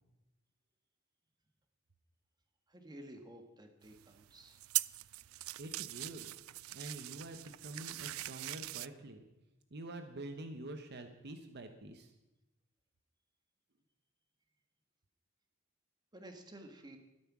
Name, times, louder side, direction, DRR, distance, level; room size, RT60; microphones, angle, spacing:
voice 1, 2.7-4.6 16.1-17.0, right 1 dB, 20° right, 5 dB, 1.5 m, -52 dB
sound 1, 3.8-8.9, right 19 dB, 85° right, 0.3 m, -41 dB
voice 2, 5.6-6.3 6.7-9.2 9.7-12.1, right 2 dB, 55° right, 7 dB, 1.0 m, -47 dB
12.5 x 12.0 x 6.1 m, 0.98 s
head